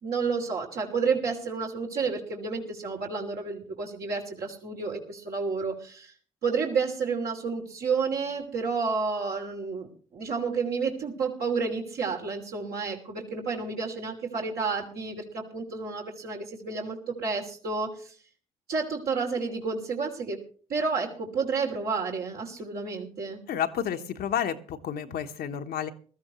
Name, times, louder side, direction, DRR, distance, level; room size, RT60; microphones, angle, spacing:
voice 1, 0.0-6.1 6.4-18.1 18.7-20.4 20.7-23.4, right 4 dB, 60° right, -1 dB, 3.0 m, -30 dB
voice 2, 23.5-25.9, left 9 dB, 65° left, 6 dB, 1.2 m, -30 dB
20.5 x 13.5 x 3.1 m, 0.41 s
hypercardioid pair, 45°, 18 cm